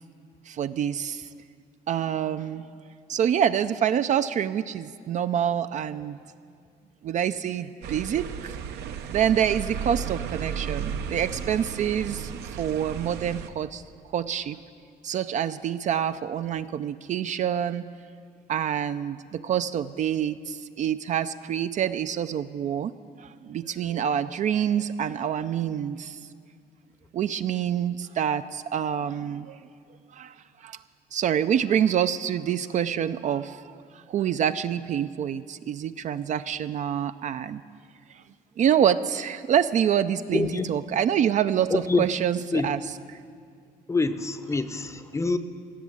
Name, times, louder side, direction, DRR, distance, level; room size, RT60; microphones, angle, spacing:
voice 1, 0.5-1.2 1.9-2.6 3.1-6.2 7.0-8.6 9.1-12.3 12.6-13.8 14.1-14.6 15.0-17.9 18.5-22.9 23.2-26.2 27.1-29.6 30.1-30.3 30.6-30.8 31.1-33.6 34.1-37.6 38.6-42.8, right 9 dB, 45° right, 11 dB, 0.4 m, -26 dB
sound 1, 7.8-13.5, right 8 dB, 75° right, 0.7 m, -34 dB
voice 2, 40.3-40.7 41.7-42.1 42.5-42.7 43.9-45.4, left 3 dB, 15° left, 11 dB, 0.7 m, -26 dB
17.5 x 7.2 x 8.5 m, 2.2 s
cardioid pair, 110°, 17 cm